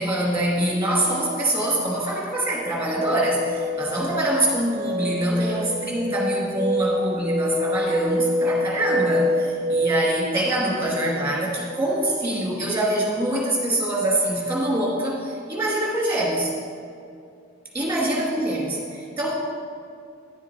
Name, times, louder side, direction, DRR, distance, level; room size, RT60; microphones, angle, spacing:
voice 1, 0.0-16.5 17.7-19.4, right 1 dB, 10° right, -4 dB, 2.2 m, -24 dB
sound 1, 3.0-10.2, left 1 dB, 35° right, 0.6 m, -26 dB
10.5 x 7.3 x 4.2 m, 2.4 s
head